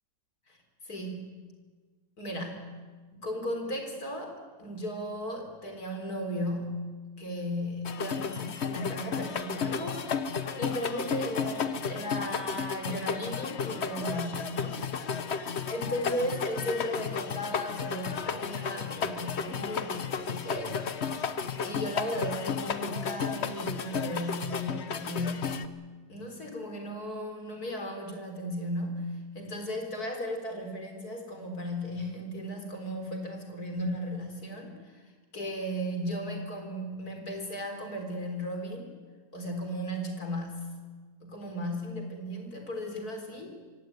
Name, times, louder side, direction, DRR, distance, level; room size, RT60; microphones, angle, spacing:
voice 1, 0.8-1.4 2.2-2.8 3.1-6.9 7.2-14.8 15.7-20.8 21.6-25.6 26.1-35.0 35.3-38.9 39.3-40.7 41.2-43.6, equal, 60° left, 4 dB, 4.4 m, -36 dB
sound 1, 7.9-25.7, left 6 dB, 45° left, 1.1 m, -33 dB
24.0 x 17.0 x 9.4 m, 1.4 s
omnidirectional pair, 1.8 m